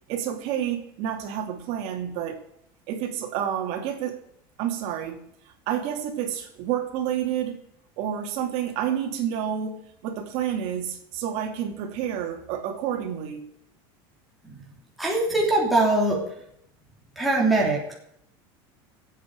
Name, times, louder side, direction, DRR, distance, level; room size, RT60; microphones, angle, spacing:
voice 1, 0.1-2.4 2.9-4.2 4.6-5.2 5.7-7.6 8.0-13.4, right 9 dB, 55° right, 4 dB, 2.7 m, -29 dB
voice 2, 15.0-16.2 17.2-17.9, right 2 dB, ahead, -4 dB, 3.0 m, -22 dB
23.0 x 8.6 x 4.9 m, 0.74 s
supercardioid pair, 160°, 13 cm